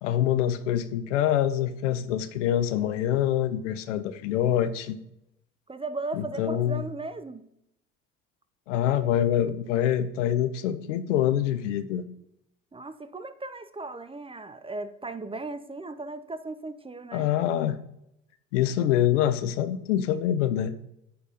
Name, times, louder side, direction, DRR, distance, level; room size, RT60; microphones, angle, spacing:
voice 1, 0.0-5.0 6.2-6.8 8.7-12.0 17.1-17.8 18.5-20.7, left 11 dB, 80° left, 11 dB, 0.7 m, -25 dB
voice 2, 5.7-7.5 12.7-17.3, right 3 dB, 15° right, 12 dB, 0.7 m, -37 dB
9.5 x 4.3 x 5.2 m, 0.79 s
hypercardioid pair, 60°, 36 cm